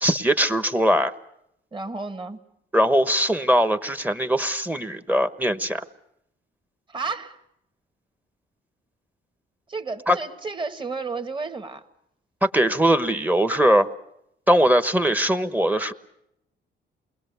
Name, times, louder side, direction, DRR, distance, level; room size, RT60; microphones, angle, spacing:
voice 1, 0.0-1.1 2.7-5.8 10.1-10.2 12.4-13.9 14.5-15.9, equal, 10° right, 11 dB, 1.1 m, -21 dB
voice 2, 1.7-2.4 6.9-7.4 9.7-11.8, right 4 dB, 25° right, 8 dB, 1.8 m, -32 dB
28.0 x 21.5 x 6.9 m, 0.78 s
cardioid pair, 90°, 20 cm